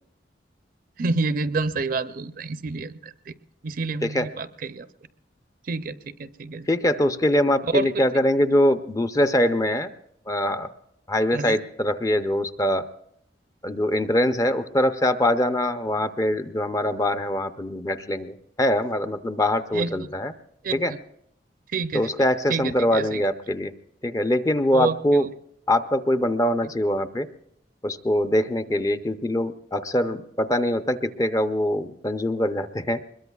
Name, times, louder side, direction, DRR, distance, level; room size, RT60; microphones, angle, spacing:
voice 1, 1.0-3.3 3.6-4.9 5.7-6.7 7.7-7.9 11.3-11.6 19.7-20.1 20.6-21.0 21.7-22.1 22.5-23.2 24.7-25.3, right 3 dB, 50° right, 13 dB, 0.5 m, -29 dB
voice 2, 6.7-9.9 10.3-10.7 11.1-12.9 13.6-20.3 20.7-20.9 21.9-23.7 24.0-25.2 25.7-27.3 27.8-33.0, left 1 dB, 20° left, 9 dB, 0.5 m, -23 dB
22.5 x 21.5 x 2.3 m, 0.72 s
head